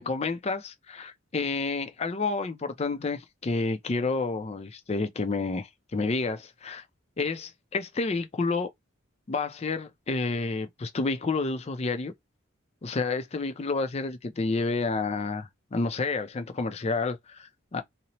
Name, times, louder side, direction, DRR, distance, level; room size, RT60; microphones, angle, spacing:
voice 1, 0.0-6.8 7.2-8.7 9.3-12.1 12.8-17.8, left 3 dB, 30° left, 0.4 m, -30 dB
2.7 x 2.0 x 2.9 m
head